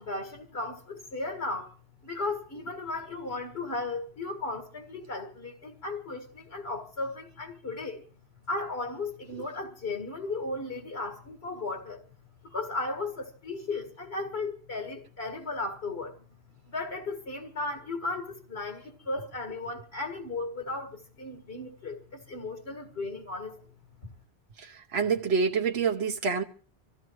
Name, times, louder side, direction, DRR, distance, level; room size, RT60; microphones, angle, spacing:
voice 1, 0.0-1.7 2.0-8.0 8.5-12.0 12.5-16.2 16.7-23.6, left 2 dB, 75° left, 2.1 m, -35 dB
voice 2, 24.9-26.4, right 5 dB, 85° right, 1.2 m, -26 dB
25.5 x 15.5 x 3.1 m
omnidirectional pair, 1.0 m